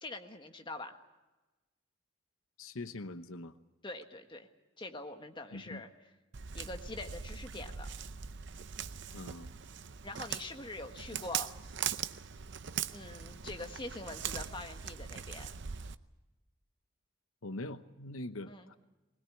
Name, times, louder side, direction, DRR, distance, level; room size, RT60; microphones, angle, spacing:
voice 1, 0.0-1.0 3.8-4.5 4.8-5.9 6.5-7.9 10.0-11.5 12.9-15.5 18.5-18.7, left 2 dB, 25° left, 5 dB, 1.5 m, -44 dB
voice 2, 2.6-3.5 5.5-5.8 9.1-9.5 17.4-18.8, left 2 dB, 80° left, 11 dB, 0.9 m, -43 dB
Walk footsteps, 6.3-15.9, right 8 dB, 55° right, 0.7 m, -41 dB
20.5 x 20.5 x 8.4 m, 1.1 s
head